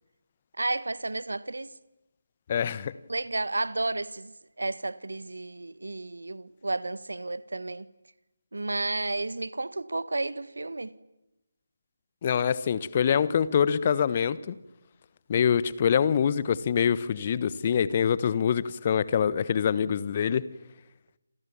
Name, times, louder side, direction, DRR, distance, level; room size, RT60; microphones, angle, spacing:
voice 1, 0.6-1.7 3.1-7.9 8.5-10.9, right 2 dB, 70° right, 1.4 m, -32 dB
voice 2, 2.5-2.9 12.2-14.5 15.3-20.4, left 8 dB, 35° left, 1.2 m, -25 dB
28.0 x 28.0 x 7.2 m
figure-of-eight pair, 155°, 0 cm